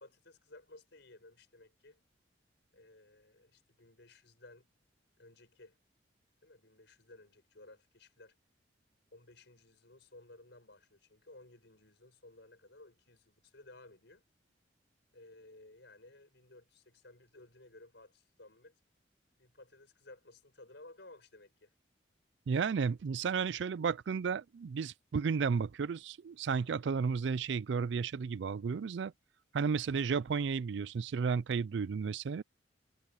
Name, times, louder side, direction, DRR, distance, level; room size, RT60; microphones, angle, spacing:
voice 1, 0.0-2.0 2.7-4.7 5.2-5.8 6.4-8.3 9.1-14.3 15.1-18.8 19.4-21.7, left 2 dB, 65° left, 6.2 m, -57 dB
voice 2, 22.5-29.1 29.5-32.4, right 5 dB, 65° right, 0.4 m, -33 dB
head